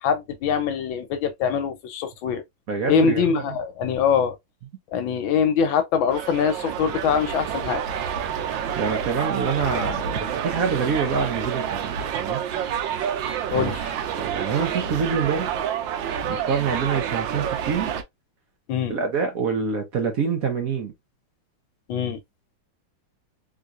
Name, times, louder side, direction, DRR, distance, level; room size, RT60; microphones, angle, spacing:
voice 1, 0.0-2.4 2.9-4.4 4.9-7.8 13.5-13.8 18.7-18.9 21.9-22.2, left 6 dB, 85° left, 1.5 m, -23 dB
voice 2, 2.7-3.4 8.8-12.4 13.5-13.7 14.1-15.6 16.3-17.9 18.9-20.9, right 6 dB, 55° right, 1.1 m, -26 dB
sound 1, 6.1-18.0, right 8 dB, 80° right, 1.3 m, -28 dB
3.7 x 2.8 x 2.4 m
omnidirectional pair, 2.1 m